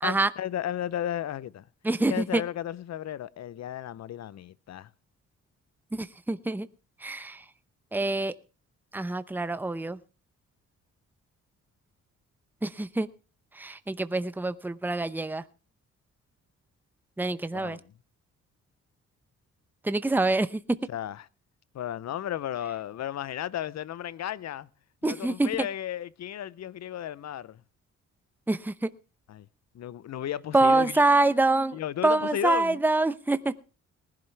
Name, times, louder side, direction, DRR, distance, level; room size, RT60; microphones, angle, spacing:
voice 1, 0.0-1.7 2.1-4.9 17.5-17.9 20.9-21.3 21.7-24.7 25.0-27.6 29.3-29.5 29.7-31.0 31.7-32.8, left 11 dB, 60° left, 0.8 m, -34 dB
voice 2, 1.8-2.4 5.9-6.7 7.0-7.4 7.9-8.3 8.9-10.0 12.6-13.1 13.6-15.4 17.2-17.8 19.8-20.6 25.0-25.5 28.5-28.9 30.5-31.8 32.0-33.5, right 2 dB, 5° right, 0.8 m, -25 dB
19.5 x 11.5 x 3.4 m
cardioid pair, 100°, 30 cm